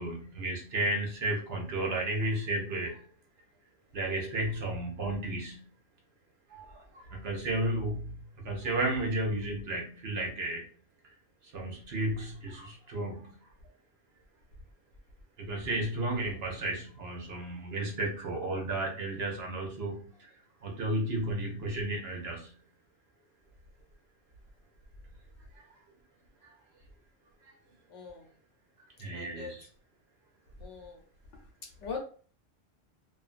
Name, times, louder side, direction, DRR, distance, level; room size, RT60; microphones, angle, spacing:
voice 1, 0.0-3.0 3.9-5.6 6.5-8.2 8.4-10.7 11.5-13.3 15.4-20.3 20.6-22.5 25.5-25.7 29.0-29.6, right 1 dB, 60° right, 1 dB, 0.9 m, -33 dB
voice 2, 27.9-28.3 29.1-29.7 30.6-31.0 31.4-31.5 31.8-32.0, left 5 dB, 75° left, 2 dB, 1.0 m, -41 dB
2.5 x 2.4 x 2.4 m, 0.42 s
omnidirectional pair, 1.2 m